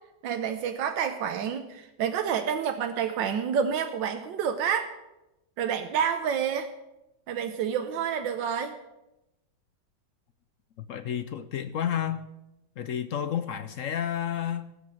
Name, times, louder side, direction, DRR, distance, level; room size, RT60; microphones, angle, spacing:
voice 1, 0.2-4.9 5.6-6.7 7.3-8.8, right 7 dB, 90° right, 1.5 m, -28 dB
voice 2, 10.8-12.3 12.8-14.7, left 9 dB, 65° left, 0.8 m, -31 dB
16.5 x 6.7 x 7.7 m
omnidirectional pair, 1.9 m